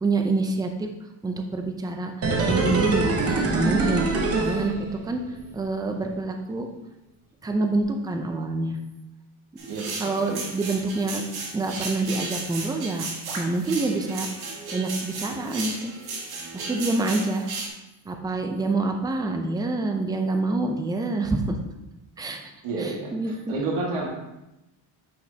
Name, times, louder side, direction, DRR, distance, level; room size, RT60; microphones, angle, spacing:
voice 1, 0.0-0.9 1.2-4.0 4.4-4.7 5.0-5.2 5.5-6.7 7.4-8.8 10.0-11.3 11.5-13.1 13.4-14.3 14.7-15.9 16.5-17.5 18.1-21.6 22.2-22.4 22.8-23.5, right 2 dB, 10° right, 4 dB, 0.4 m, -26 dB
sound 1, 2.2-5.3 5.6-5.7, right 3 dB, 30° right, 0.9 m, -24 dB
sound 2, 9.6-17.7, right 3 dB, 50° right, 1.7 m, -35 dB
voice 2, 9.7-10.4 13.3-13.4 22.6-24.1, right 3 dB, 75° right, -2 dB, 2.0 m, -31 dB
9.4 x 5.2 x 2.8 m, 0.94 s
cardioid pair, 150°, 50 cm